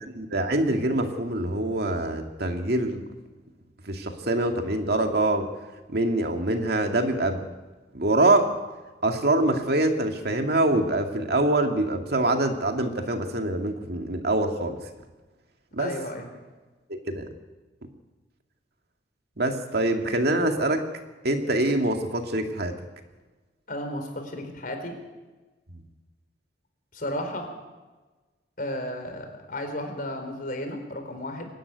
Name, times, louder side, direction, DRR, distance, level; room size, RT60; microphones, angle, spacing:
voice 1, 0.1-3.0 3.9-5.5 5.9-7.4 7.9-8.5 9.0-14.8 15.7-15.9 16.9-17.3 19.4-20.8 21.2-22.8, right 2 dB, 65° right, 4 dB, 2.3 m, -24 dB
voice 2, 15.8-16.3 23.7-24.9 26.9-27.5 28.6-31.5, left 1 dB, 50° left, 5 dB, 4.3 m, -33 dB
24.0 x 12.5 x 9.7 m, 1.2 s
head